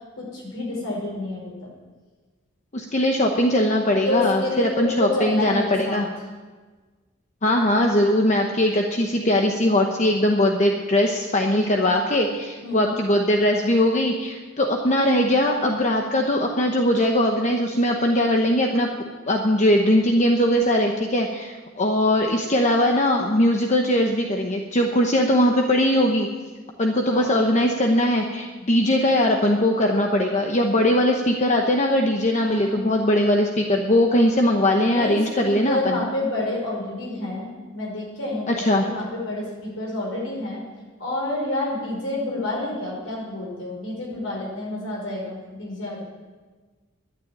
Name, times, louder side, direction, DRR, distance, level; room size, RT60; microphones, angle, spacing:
voice 1, 0.2-1.7 4.1-6.0 12.6-12.8 27.1-27.4 32.4-33.1 34.9-40.6 41.0-46.0, left 1 dB, 80° left, -3 dB, 5.1 m, -29 dB
voice 2, 2.7-6.1 7.4-18.9 19.3-26.3 26.8-36.0 38.5-38.8, left 1 dB, 35° left, 2 dB, 1.0 m, -20 dB
12.0 x 10.0 x 9.1 m, 1.4 s
head